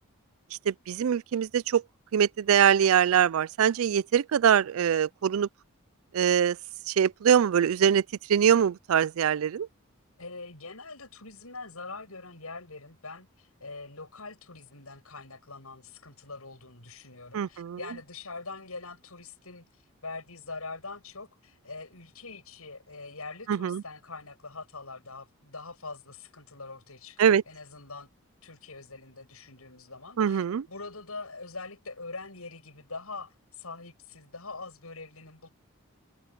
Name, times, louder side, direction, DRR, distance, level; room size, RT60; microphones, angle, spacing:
voice 1, 0.7-1.8 2.1-5.5 6.1-6.6 6.9-8.0 8.3-9.7 17.3-17.8 23.5-23.8 27.2-27.4 30.2-30.7, right 8 dB, 70° right, 0.4 m, -23 dB
voice 2, 10.2-19.6 20.0-28.1 28.4-35.5, left 3 dB, 80° left, 7.8 m, -43 dB
head